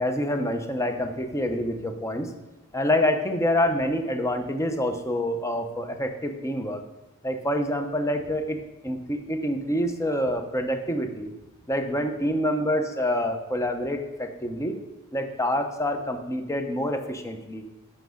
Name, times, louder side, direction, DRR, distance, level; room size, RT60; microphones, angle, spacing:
voice 1, 0.0-2.3 2.7-6.8 7.2-8.6 8.8-11.3 11.7-14.7 15.1-17.6, left 1 dB, 15° left, 6 dB, 0.8 m, -27 dB
6.9 x 5.9 x 6.4 m, 0.99 s
head